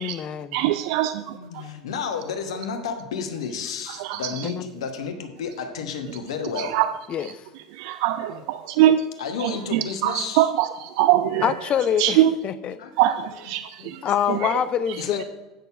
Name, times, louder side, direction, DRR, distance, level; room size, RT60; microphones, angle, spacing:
voice 1, 0.0-0.6 4.4-4.6 7.1-7.4 11.4-12.8 14.0-15.2, left 9 dB, 35° left, 14 dB, 0.6 m, -25 dB
voice 2, 0.5-1.6 3.9-4.5 6.6-6.9 7.2-7.3 7.7-9.1 9.4-11.5 12.0-12.3 13.0-14.0 14.3-14.6, right 13 dB, 55° right, 12 dB, 0.4 m, -23 dB
voice 3, 1.3-6.8 8.3-8.4 9.2-10.5 12.8-13.4 13.8-14.1 15.0-15.2, left 6 dB, 65° left, 6 dB, 1.2 m, -32 dB
9.2 x 6.7 x 4.7 m, 1.2 s
figure-of-eight pair, 80°, 3 cm